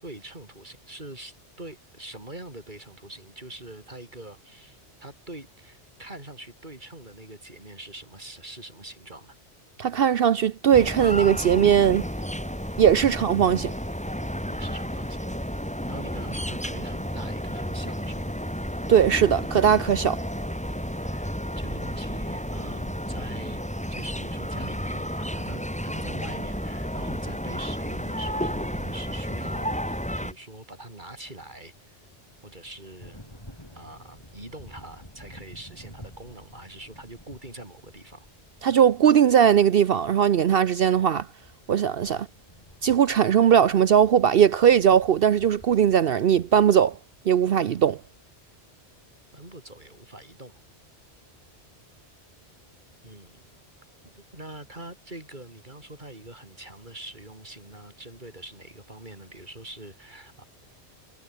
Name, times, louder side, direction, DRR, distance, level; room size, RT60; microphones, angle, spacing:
voice 1, 0.0-9.4 14.5-15.3 15.9-18.3 21.0-23.6 23.9-32.0 32.4-33.3 33.8-38.3 42.1-42.2 49.3-50.6 53.0-53.4 54.2-60.4, right 1 dB, 45° right, 5.6 m, -44 dB
voice 2, 9.8-12.0 12.8-13.7 18.9-20.2 38.6-41.3 41.7-42.3 42.8-47.0 47.3-48.0, right 8 dB, 60° right, 0.8 m, -19 dB
sound 1, 10.7-30.3, equal, 5° left, 6.2 m, -32 dB
sound 2, 31.1-47.0, equal, 20° left, 7.8 m, -51 dB
omnidirectional pair, 1.1 m